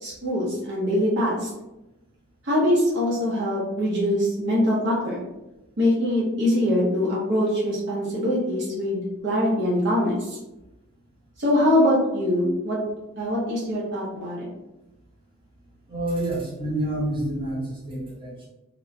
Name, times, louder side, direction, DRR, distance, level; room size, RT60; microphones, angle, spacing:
voice 1, 0.0-1.5 2.4-5.2 5.8-10.4 11.4-12.8 13.2-14.5, left 1 dB, 60° right, -6 dB, 0.7 m, -23 dB
voice 2, 15.9-18.5, right 1 dB, 25° right, -7 dB, 0.9 m, -28 dB
2.9 x 2.0 x 2.6 m, 0.97 s
head